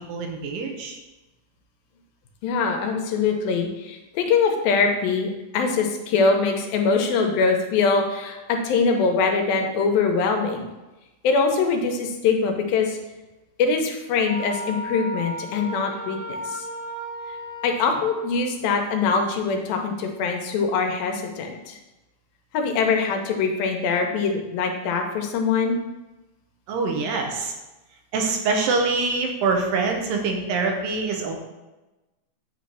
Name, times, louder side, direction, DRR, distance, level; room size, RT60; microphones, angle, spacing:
voice 1, 0.1-1.0 26.7-27.5 28.1-31.4, right 4 dB, 80° right, 2 dB, 2.6 m, -24 dB
voice 2, 2.4-10.7 11.2-13.0 13.6-16.2 16.5-16.7 17.6-21.8 22.5-25.8, left 4 dB, 90° left, 3 dB, 2.6 m, -23 dB
Wind instrument woodwind instrument, 14.3-18.4, equal, 55° right, 1.3 m, -34 dB
8.9 x 3.2 x 5.6 m, 1.1 s
omnidirectional pair, 4.1 m